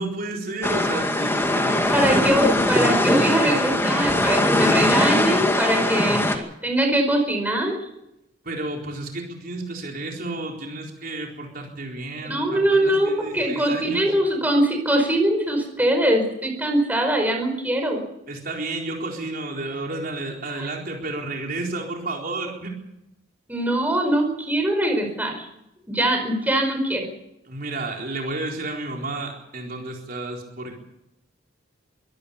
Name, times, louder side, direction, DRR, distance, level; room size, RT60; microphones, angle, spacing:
voice 1, 0.0-2.4 8.4-14.1 18.3-22.7 27.5-30.8, right 2 dB, 50° right, 0 dB, 4.1 m, -31 dB
sound 1, 0.6-6.4, left 1 dB, 15° left, 2.2 m, -21 dB
voice 2, 1.9-7.8 12.3-18.0 23.5-25.5 25.9-27.1, right 1 dB, 10° right, 3 dB, 5.0 m, -22 dB
23.5 x 17.5 x 7.2 m, 0.85 s
head